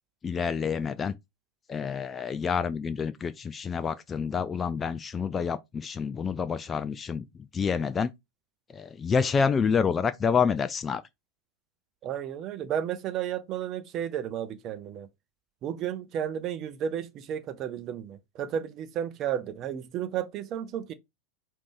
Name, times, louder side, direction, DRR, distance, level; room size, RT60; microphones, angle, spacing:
voice 1, 0.2-1.1 1.7-7.2 7.5-8.1 8.7-11.0, left 6 dB, 20° left, 0.3 m, -28 dB
voice 2, 12.0-15.1 15.6-20.9, right 9 dB, 35° right, 0.6 m, -33 dB
5.0 x 2.7 x 3.5 m
figure-of-eight pair, 90°, 0 cm